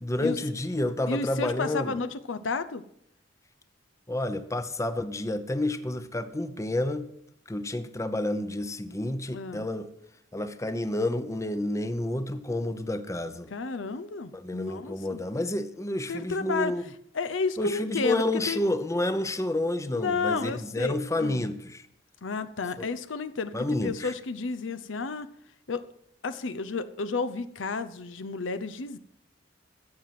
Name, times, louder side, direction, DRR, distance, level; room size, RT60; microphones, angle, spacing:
voice 1, 0.0-2.0 4.1-7.1 7.5-9.9 10.3-13.5 14.3-16.8 17.6-21.9 22.8-22.9 23.5-24.1, left 1 dB, 15° left, 10 dB, 0.8 m, -29 dB
voice 2, 1.1-2.8 9.3-9.7 13.5-15.2 16.1-16.7 17.1-18.6 19.9-21.5 22.2-25.3 25.7-25.8 26.2-29.0, left 4 dB, 75° left, 12 dB, 0.7 m, -32 dB
14.5 x 7.4 x 5.9 m, 0.74 s
head